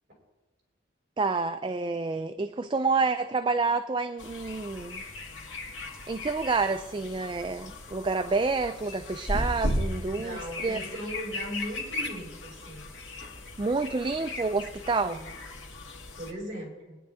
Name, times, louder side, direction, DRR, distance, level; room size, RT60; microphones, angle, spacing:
voice 1, 1.2-5.0 6.1-10.8 13.6-15.2, right 4 dB, 25° right, 9 dB, 0.4 m, -28 dB
sound 1, 4.2-16.3, left 1 dB, 80° left, 1.7 m, -36 dB
voice 2, 10.1-12.9 15.0-15.3 16.1-17.0, equal, 40° right, -3 dB, 5.6 m, -38 dB
21.5 x 10.0 x 3.5 m, 1.2 s
head